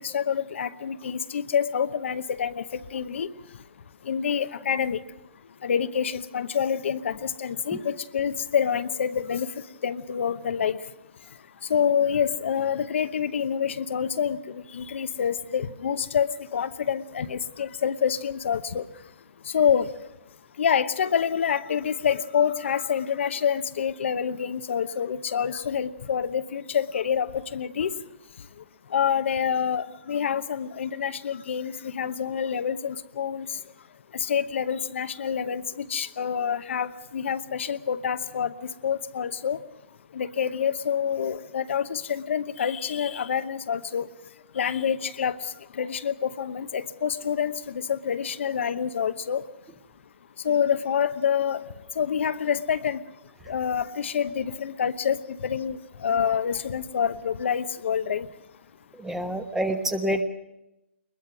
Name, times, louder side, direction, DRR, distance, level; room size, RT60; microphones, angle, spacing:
voice 1, 0.0-3.3 4.1-5.0 5.6-9.5 9.8-10.8 11.7-18.9 19.5-19.9 20.6-27.9 28.9-33.5 34.1-38.5 38.8-39.6 40.1-44.1 44.5-49.4 50.4-51.6 52.0-53.0 53.5-58.3, left 7 dB, 65° left, 10 dB, 0.9 m, -27 dB
voice 2, 58.9-60.2, right 1 dB, 5° right, 8 dB, 1.3 m, -27 dB
22.5 x 21.0 x 6.1 m, 0.90 s
hypercardioid pair, 140°, 7 cm